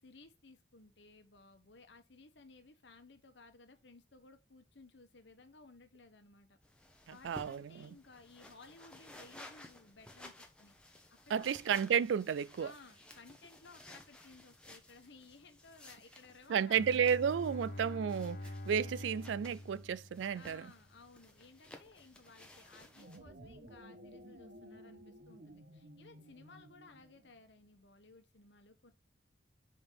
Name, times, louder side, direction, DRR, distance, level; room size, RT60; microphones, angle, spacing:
voice 1, 0.0-6.6 7.1-11.0 11.3-11.5 12.6-17.0 20.3-28.9, left 3 dB, 70° left, 1.1 m, -59 dB
sound 1, 6.6-23.2, left 1 dB, 5° left, 0.9 m, -57 dB
voice 2, 7.2-7.9 11.3-12.7 16.5-18.4 18.7-20.7, right 7 dB, 80° right, 0.3 m, -32 dB
Bowed string instrument, 16.7-20.7, left 1 dB, 50° left, 0.6 m, -45 dB
sound 2, 22.8-27.4, right 1 dB, 50° right, 0.9 m, -55 dB
5.2 x 3.9 x 5.5 m
head